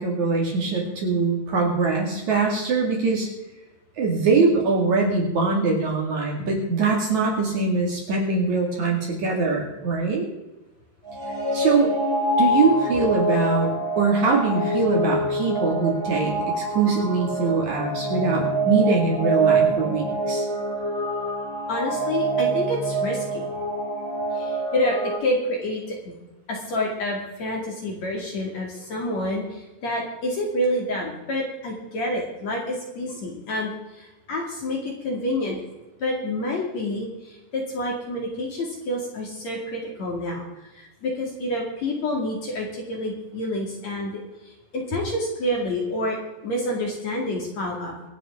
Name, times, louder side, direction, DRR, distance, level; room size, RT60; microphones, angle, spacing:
voice 1, 0.0-3.3 4.0-10.3 11.5-11.9 12.4-20.5, right 4 dB, 50° right, -1 dB, 3.2 m, -22 dB
sound 1, 11.0-25.2, right 2 dB, 10° right, 1.2 m, -25 dB
voice 2, 21.7-23.5 24.4-26.1 26.5-29.4 29.8-33.7 34.0-35.6 36.0-37.1 37.5-40.4 40.8-44.2 44.7-46.2 46.4-47.9, left 1 dB, 45° left, -1 dB, 3.2 m, -28 dB
25.5 x 9.0 x 3.7 m, 1.0 s
omnidirectional pair, 4.9 m